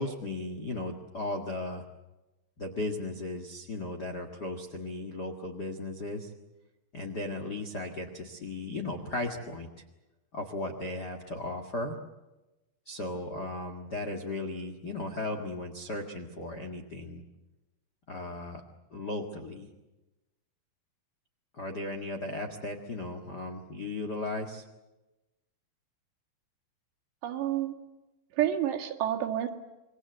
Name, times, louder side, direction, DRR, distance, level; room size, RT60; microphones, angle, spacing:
voice 1, 0.0-1.8 2.6-6.3 6.9-9.7 10.3-11.9 12.8-17.2 18.1-18.6 18.9-19.7 21.5-24.6, left 2 dB, 50° left, 4 dB, 1.2 m, -36 dB
voice 2, 27.2-27.7 28.3-29.5, right 11 dB, 75° right, 4 dB, 4.0 m, -29 dB
27.0 x 23.0 x 8.1 m, 1.0 s
omnidirectional pair, 5.0 m